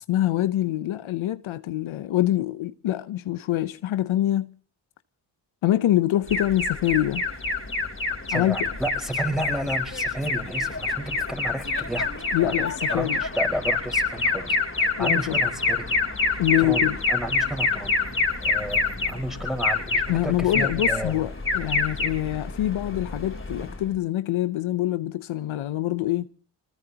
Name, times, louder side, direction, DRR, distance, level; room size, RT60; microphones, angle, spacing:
voice 1, 0.1-4.5 5.6-7.2 8.3-8.7 12.3-13.2 15.0-15.4 16.4-17.0 20.1-26.3, left 14 dB, 85° left, 0.8 m, -25 dB
Alarm, 6.3-23.9, left 3 dB, 25° left, 3.7 m, -27 dB
voice 2, 8.3-12.1 12.4-12.5 12.9-16.0 16.3-16.8 17.1-18.1 18.4-21.1, equal, ahead, 5.0 m, -32 dB
24.5 x 20.0 x 2.9 m
cardioid pair, 50°, 47 cm